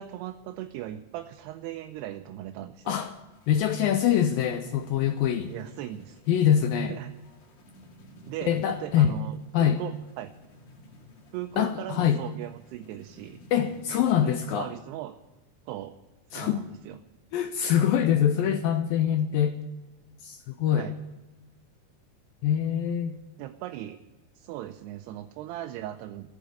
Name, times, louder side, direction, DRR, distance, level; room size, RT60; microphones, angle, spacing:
voice 1, 0.0-3.0 5.5-6.2 6.7-7.1 8.3-10.3 11.3-13.4 14.2-15.1 15.7-15.9 16.3-17.0 20.7-20.9 23.4-24.0 24.4-26.4, right 13 dB, 85° right, 6 dB, 2.7 m, -38 dB
sound 1, 3.3-14.0, left 1 dB, 55° left, 3.5 m, -55 dB
voice 2, 3.5-5.5 6.3-7.0 8.5-9.2 9.5-9.8 11.6-12.2 13.5-14.7 16.3-16.7 17.3-19.6 20.2-20.9 22.4-23.2, left 9 dB, 80° left, 7 dB, 2.1 m, -24 dB
14.5 x 7.3 x 9.8 m, 1.1 s
omnidirectional pair, 4.7 m